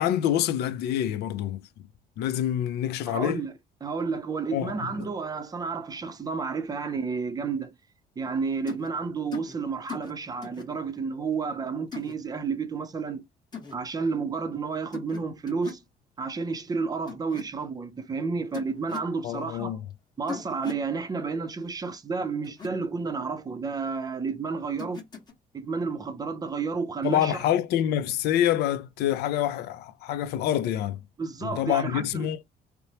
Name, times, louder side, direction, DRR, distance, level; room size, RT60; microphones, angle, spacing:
voice 1, 0.0-1.7 2.2-3.4 4.5-4.7 19.2-19.8 27.0-31.0 31.4-32.4, left 11 dB, 75° left, 0.4 m, -26 dB
voice 2, 3.0-3.5 3.8-7.8 8.2-13.2 13.7-15.8 16.2-19.8 20.2-25.0 25.5-27.4 31.2-32.3, right 5 dB, 20° right, 0.5 m, -31 dB
sound 1, 8.7-8.9 9.3-9.5 9.9-10.1 10.4-10.7 11.9-12.1 13.5-13.7 14.9-15.2 15.5-15.8 17.1-17.4 18.5-19.1 20.3-20.8 22.4-22.7 24.8-25.3, left 6 dB, 25° left, 1.3 m, -38 dB
2.9 x 2.0 x 2.8 m
cardioid pair, 110°, 17 cm